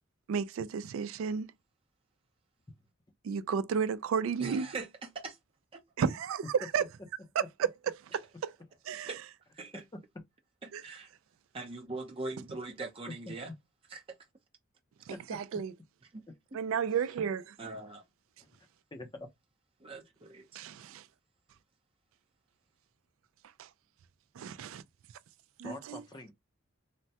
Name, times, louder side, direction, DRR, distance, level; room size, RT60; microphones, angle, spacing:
voice 1, 0.3-1.5 3.2-4.7 6.0-6.9 7.4-7.9 8.9-9.1 10.7-10.8 15.1-15.7 16.5-17.5 20.6-21.0 23.6-23.7 24.4-24.8 25.6-26.0, right 7 dB, 75° right, 0.3 m, -32 dB
voice 2, 4.4-5.4 5.7-5.8 9.1-9.2 9.5-9.8 10.6-11.1 11.5-13.5 13.9-14.0 16.1-16.2 17.6-18.0 19.8-20.6, right 3 dB, 25° right, 0.6 m, -41 dB
voice 3, 15.1-15.4 18.9-19.3 25.6-26.3, left 2 dB, 20° left, 0.6 m, -44 dB
3.2 x 2.1 x 2.8 m
head